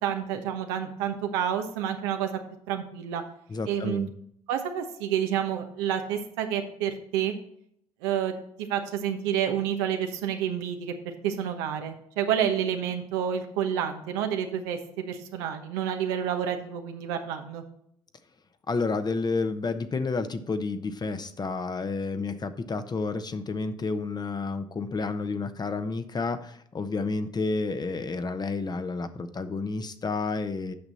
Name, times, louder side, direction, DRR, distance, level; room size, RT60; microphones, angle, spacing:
voice 1, 0.0-2.4 2.7-3.2 3.7-4.1 4.5-7.3 8.0-17.6, right 9 dB, 85° right, 5 dB, 1.0 m, -29 dB
voice 2, 3.5-4.1 18.7-30.7, left 3 dB, 30° left, 10 dB, 0.9 m, -30 dB
8.6 x 6.1 x 4.1 m, 0.70 s
supercardioid pair, 65°, 13 cm